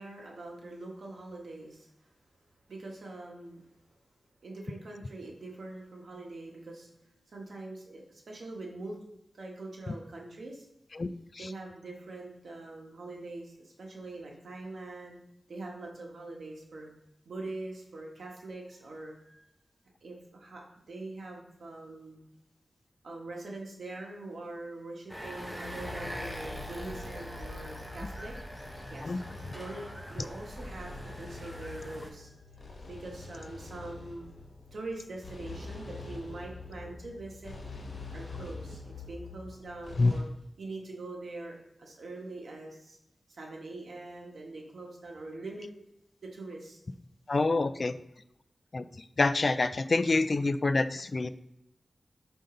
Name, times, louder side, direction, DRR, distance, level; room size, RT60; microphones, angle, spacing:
voice 1, 0.0-1.9 2.7-3.6 4.4-6.9 7.3-9.0 9.3-10.7 11.4-15.2 15.5-16.9 17.2-19.4 20.0-22.2 23.0-28.3 28.9-29.2 29.5-34.3 34.7-37.5 38.1-40.2 40.6-43.0 43.3-45.7 46.2-46.8, right 2 dB, 80° right, -1 dB, 1.4 m, -43 dB
sound 1, 25.1-32.1, equal, 5° right, 1.0 m, -42 dB
sound 2, 25.6-40.2, left 3 dB, 70° left, 1.4 m, -46 dB
voice 2, 47.3-47.9 48.7-48.8 49.2-51.3, left 3 dB, 50° left, 12 dB, 0.3 m, -26 dB
5.6 x 5.2 x 3.9 m, 0.82 s
wide cardioid pair, 85°, 0 cm